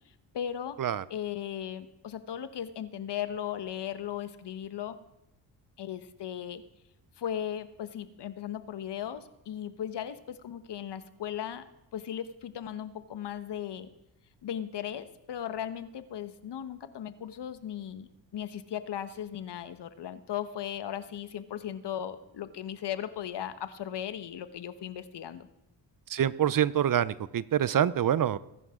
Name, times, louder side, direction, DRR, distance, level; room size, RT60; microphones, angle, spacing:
voice 1, 0.3-0.8 1.1-5.0 5.8-6.6 7.2-11.6 11.9-13.9 14.4-25.5, left 10 dB, 60° left, 12 dB, 1.3 m, -37 dB
voice 2, 26.1-28.4, right 10 dB, 45° right, 18 dB, 0.7 m, -26 dB
21.5 x 11.0 x 3.8 m, 0.90 s
supercardioid pair, 55°, 47 cm